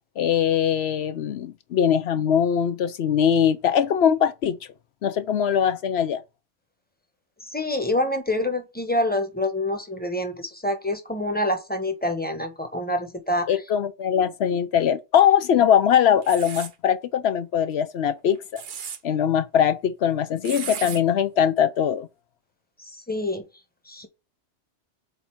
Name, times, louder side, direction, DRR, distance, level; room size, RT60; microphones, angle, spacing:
voice 1, 0.2-4.6 5.0-6.2 13.5-18.6 19.0-22.1, left 8 dB, 65° left, 0.8 m, -21 dB
voice 2, 7.4-13.5 23.1-23.4 23.9-24.1, left 1 dB, 10° left, 1.0 m, -26 dB
sound 1, 16.2-16.7 18.3-19.0 20.4-21.0, right 7 dB, 50° right, 0.8 m, -35 dB
7.8 x 2.7 x 4.5 m
omnidirectional pair, 1.2 m